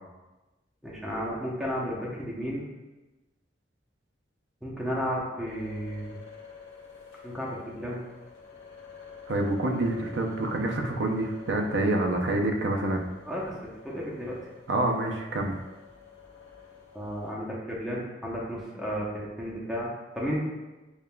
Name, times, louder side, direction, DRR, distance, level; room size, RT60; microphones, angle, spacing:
voice 1, 0.8-2.7 4.6-6.2 7.2-8.0 13.2-14.4 16.9-20.4, equal, ahead, -6 dB, 0.7 m, -33 dB
sound 1, 5.5-17.3, left 6 dB, 80° left, 0.9 m, -49 dB
voice 2, 9.3-13.1 14.7-15.6, right 2 dB, 75° right, 2 dB, 0.6 m, -27 dB
7.0 x 2.3 x 2.2 m, 1.1 s
head